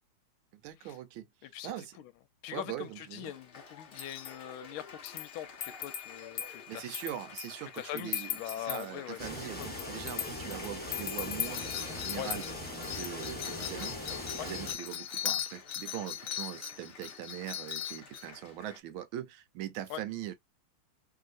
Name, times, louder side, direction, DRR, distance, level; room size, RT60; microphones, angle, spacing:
voice 1, 0.6-1.3 1.6-1.9 2.5-3.3 6.5-11.6 11.9-12.4 12.9-14.0 14.4-20.3, right 12 dB, 80° right, 1.4 m, -41 dB
voice 2, 1.4-2.1 2.4-7.0 7.7-9.3 9.6-10.0 12.2-12.3 14.4-14.5 19.9-20.0, left 12 dB, 90° left, 1.4 m, -42 dB
Applause, 2.8-18.8, left 4 dB, 45° left, 0.7 m, -52 dB
sound 1, 4.0-4.3 5.1-8.9 9.6-18.3, left 11 dB, 65° left, 1.2 m, -39 dB
sound 2, 9.2-14.7, left 1 dB, 5° left, 0.7 m, -40 dB
3.3 x 2.8 x 2.4 m
omnidirectional pair, 2.2 m